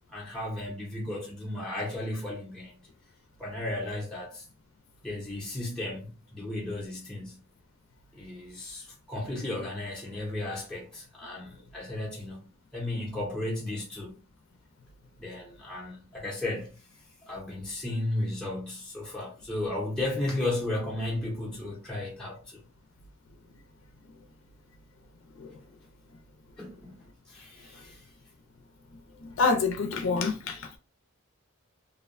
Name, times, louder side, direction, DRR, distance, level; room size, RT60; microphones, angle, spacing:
voice 1, 0.1-2.8 3.4-4.4 5.0-7.4 8.1-12.5 12.7-14.2 15.2-16.7 17.3-22.6 26.6-28.0, left 1 dB, 5° left, 0.6 m, -34 dB
voice 2, 29.2-30.8, left 4 dB, 70° left, 0.5 m, -27 dB
2.5 x 2.1 x 2.5 m
head